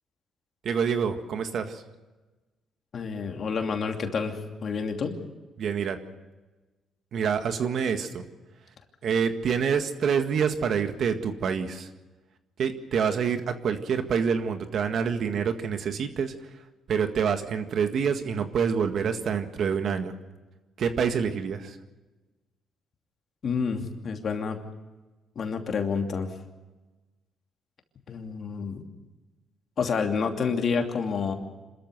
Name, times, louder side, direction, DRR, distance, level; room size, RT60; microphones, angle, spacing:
voice 1, 0.6-1.8 5.6-6.0 7.1-8.2 9.0-11.9 12.6-20.1 20.8-21.8, right 6 dB, 65° right, 7 dB, 1.8 m, -27 dB
voice 2, 2.9-5.2 23.4-24.6 25.4-26.3 28.1-28.8 29.8-31.3, left 5 dB, 55° left, 4 dB, 2.7 m, -29 dB
26.5 x 13.5 x 8.0 m, 1.2 s
cardioid pair, 90°, 0 cm